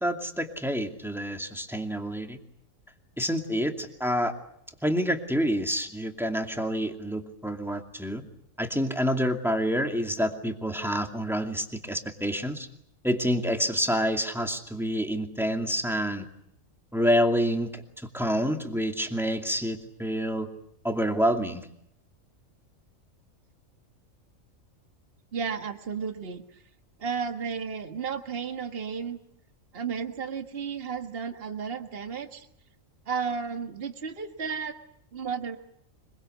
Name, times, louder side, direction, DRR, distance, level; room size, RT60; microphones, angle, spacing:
voice 1, 0.0-2.4 3.2-4.3 4.8-8.2 8.6-12.7 13.0-16.3 16.9-20.5 20.8-21.7, equal, ahead, 4 dB, 2.5 m, -28 dB
voice 2, 25.3-26.6 27.0-29.2 29.7-32.5 33.1-34.7 35.1-35.6, right 6 dB, 45° right, 6 dB, 1.8 m, -33 dB
25.0 x 23.0 x 8.1 m, 0.74 s
omnidirectional pair, 1.4 m